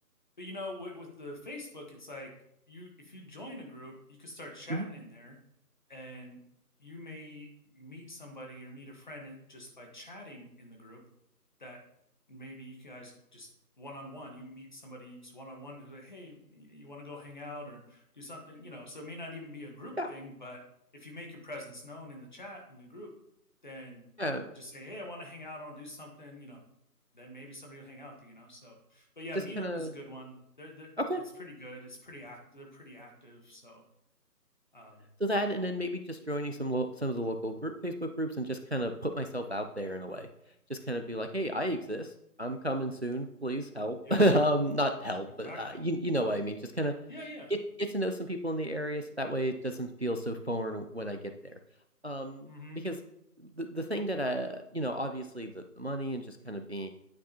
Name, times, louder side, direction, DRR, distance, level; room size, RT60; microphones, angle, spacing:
voice 1, 0.4-2.3 2.7-5.3 5.9-6.4 6.8-11.0 11.6-11.8 12.3-13.5 13.8-20.6 20.9-23.1 23.6-24.0 24.5-26.6 27.1-30.9 31.4-33.8 34.7-35.1 44.0-44.3 45.4-45.8 47.1-47.5 52.4-52.8, left 1 dB, 30° left, 1 dB, 1.4 m, -45 dB
voice 2, 24.2-24.5 29.6-29.9 31.0-31.2 35.2-40.3 40.7-42.1 42.4-46.9 47.5-51.5 52.0-52.5 52.8-53.0 53.4-56.9, right 1 dB, 45° right, 7 dB, 0.5 m, -32 dB
9.8 x 8.4 x 2.9 m, 0.79 s
figure-of-eight pair, 175°, 48 cm